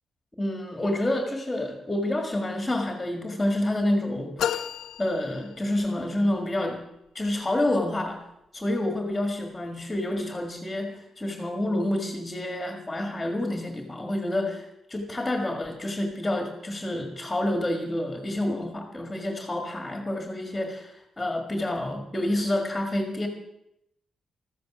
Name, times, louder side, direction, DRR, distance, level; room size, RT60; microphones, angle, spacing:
voice 1, 0.4-4.6 5.0-6.8 7.1-8.2 8.5-23.3, left 1 dB, 10° left, 4 dB, 1.9 m, -28 dB
sound 1, 4.4-6.1, left 10 dB, 85° left, 0.6 m, -32 dB
15.0 x 14.0 x 6.2 m, 0.81 s
wide cardioid pair, 165°, 0 cm